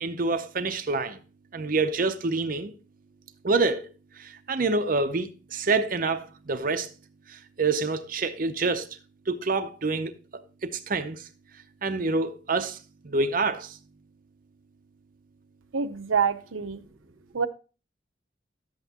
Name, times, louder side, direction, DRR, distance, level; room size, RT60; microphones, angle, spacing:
voice 1, 0.0-1.2 1.5-2.7 3.4-3.8 4.5-6.9 7.6-8.9 9.3-10.1 10.6-11.2 11.8-12.8 13.0-13.7, right 3 dB, 45° right, 0.6 m, -26 dB
voice 2, 15.7-16.8 17.3-17.5, right 6 dB, 85° right, 0.8 m, -26 dB
11.5 x 8.0 x 2.8 m
head